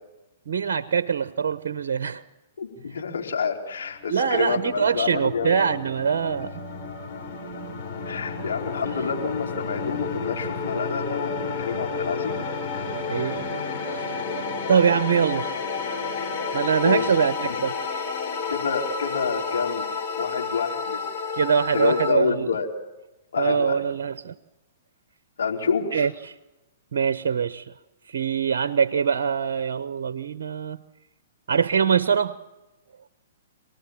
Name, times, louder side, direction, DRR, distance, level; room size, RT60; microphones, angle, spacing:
voice 1, 0.5-2.2 4.1-6.6 13.1-13.5 13.8-14.2 14.7-16.1 16.5-18.1 21.3-22.5 23.4-24.3 25.9-26.3 26.9-27.7 28.1-30.8 31.5-32.3, right 7 dB, 65° right, 12 dB, 1.0 m, -24 dB
voice 2, 2.6-5.6 8.0-12.4 16.8-17.1 17.4-17.6 18.5-19.9 20.2-21.1 21.7-22.7 23.3-23.8 25.4-26.1, left 5 dB, 75° left, 0 dB, 4.3 m, -28 dB
sound 1, 3.8-22.1, left 4 dB, 40° left, 5.3 m, -31 dB
27.0 x 19.5 x 7.3 m, 1.0 s
hypercardioid pair, 120°, 0 cm